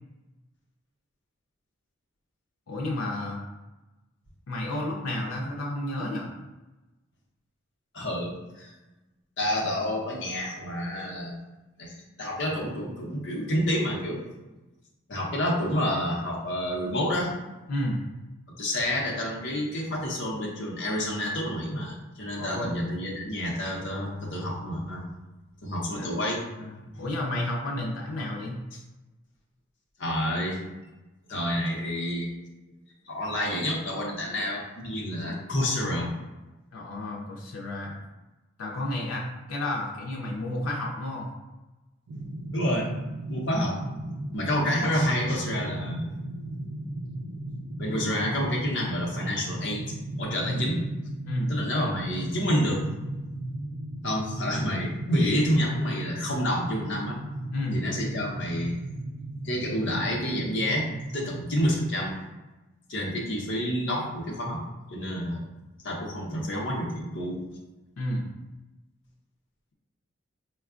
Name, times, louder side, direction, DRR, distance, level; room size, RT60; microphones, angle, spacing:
voice 1, 2.7-3.4 4.5-6.3 17.7-18.0 22.3-22.7 26.0-26.3 26.6-28.6 36.7-38.0 38.6-41.3 50.5-50.7 51.2-51.5 57.5-57.8 68.0-68.3, left 1 dB, 90° left, -2 dB, 0.5 m, -31 dB
voice 2, 7.9-8.3 8.6-8.7 9.4-11.3 11.8-14.2 15.1-17.3 18.6-25.0 25.6-26.4 26.9-27.0 30.0-30.6 31.3-32.3 33.1-36.1 42.5-42.9 43.3-43.8 44.3-46.1 47.8-49.8 50.2-50.8 51.5-52.9 54.0-57.2 57.7-58.8 59.4-60.9 61.1-62.1 62.9-64.6 64.9-65.4 65.8-67.4, equal, 60° left, -3 dB, 0.7 m, -28 dB
sound 1, 42.1-61.7, right 1 dB, 75° right, 0.5 m, -36 dB
4.4 x 2.2 x 2.4 m, 1.1 s
head